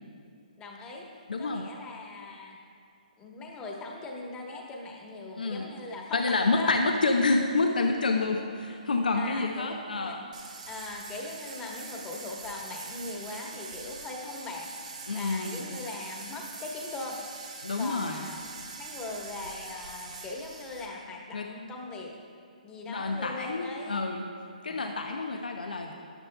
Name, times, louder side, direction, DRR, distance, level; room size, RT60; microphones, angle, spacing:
voice 1, 0.6-1.1 1.4-2.6 3.2-6.8 9.1-10.2 10.7-14.7 15.1-17.2 17.8-22.1 22.6-24.1 24.5-24.8, left 3 dB, 15° left, -1 dB, 1.2 m, -40 dB
voice 2, 1.3-1.7 5.4-5.7 6.1-10.2 15.1-15.8 17.6-18.3 21.3-21.5 22.9-24.3 24.6-25.9, left 3 dB, 80° left, 3 dB, 0.7 m, -28 dB
sound 1, 10.3-20.9, right 4 dB, 65° right, 2.2 m, -43 dB
13.0 x 9.9 x 2.3 m, 2.4 s
hypercardioid pair, 140°, 5 cm